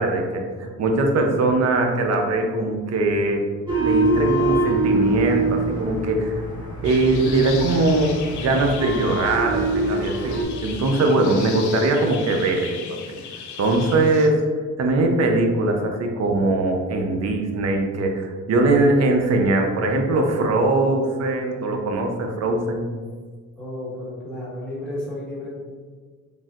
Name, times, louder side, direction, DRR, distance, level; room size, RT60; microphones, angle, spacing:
voice 1, 0.0-3.4 3.7-6.4 6.8-12.8 13.1-13.2 13.6-14.4 14.8-22.9, right 2 dB, 60° right, 3 dB, 0.6 m, -21 dB
sound 1, 3.7-10.4, right 2 dB, 15° right, 0.9 m, -24 dB
sound 2, 6.8-14.3, left 7 dB, 75° left, 0.5 m, -37 dB
voice 2, 23.6-25.5, left 1 dB, 5° left, -9 dB, 1.4 m, -32 dB
3.3 x 2.5 x 2.4 m, 1.5 s
cardioid pair, 90°, 30 cm